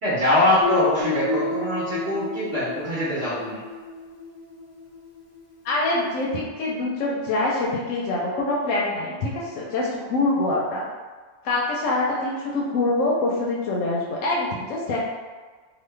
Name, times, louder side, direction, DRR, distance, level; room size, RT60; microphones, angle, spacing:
voice 1, 0.0-3.6, left 1 dB, 60° right, -11 dB, 1.2 m, -23 dB
Guitar, 0.6-5.3, left 5 dB, 45° left, 0.6 m, -31 dB
voice 2, 5.6-10.9 11.4-15.0, left 2 dB, 85° left, -4 dB, 1.0 m, -25 dB
3.0 x 2.2 x 3.2 m, 1.4 s
omnidirectional pair, 1.3 m